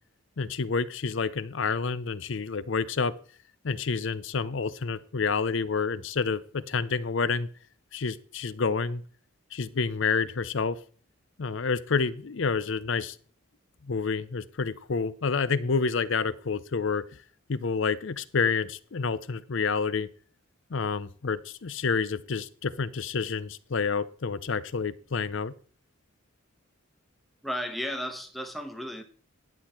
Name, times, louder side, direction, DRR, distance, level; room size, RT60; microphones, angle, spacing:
voice 1, 0.4-3.1 3.6-7.5 7.9-9.0 9.5-10.8 11.4-13.2 13.8-17.1 17.5-20.1 20.7-25.5, left 5 dB, 65° left, 16 dB, 0.6 m, -29 dB
voice 2, 27.4-29.0, equal, ahead, 5 dB, 1.0 m, -34 dB
11.0 x 8.0 x 4.3 m, 0.43 s
head